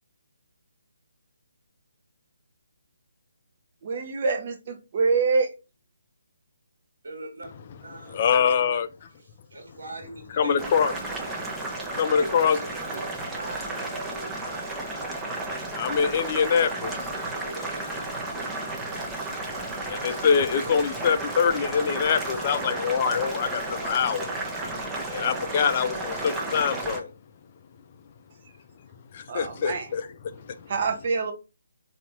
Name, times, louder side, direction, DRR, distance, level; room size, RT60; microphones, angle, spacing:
voice 1, 3.8-5.5 29.3-29.9 30.7-31.3, right 4 dB, 40° right, 0.9 m, -25 dB
voice 2, 7.0-8.7 9.5-10.6 11.3-12.3 12.6-14.7 15.8-15.9 17.4-18.0, right 2 dB, 60° right, 1.6 m, -42 dB
voice 3, 8.0-9.1 10.3-10.9 12.0-12.6 15.7-17.3 19.9-24.3 25.1-27.1 29.1-30.7, left 7 dB, 35° left, 0.5 m, -25 dB
Boiling, 10.6-27.0, right 2 dB, 10° right, 0.8 m, -33 dB
4.0 x 2.8 x 3.6 m
figure-of-eight pair, 145°, 0 cm